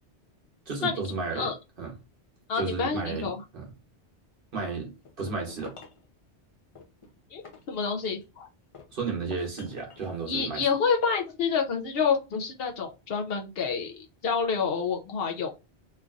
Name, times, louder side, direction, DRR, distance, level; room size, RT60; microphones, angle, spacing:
voice 1, 0.7-1.5 1.8-1.9 2.6-3.7 4.5-4.9 5.2-5.7 8.9-10.7, right 4 dB, 55° right, 1.1 m, -33 dB
voice 2, 2.5-3.4 7.3-7.4 7.7-8.5 10.3-15.7, left 5 dB, 65° left, 0.8 m, -28 dB
sound 1, 5.0-6.1 6.8-8.3 8.7-10.1, left 5 dB, 40° left, 0.5 m, -49 dB
3.1 x 2.5 x 2.3 m
omnidirectional pair, 1.1 m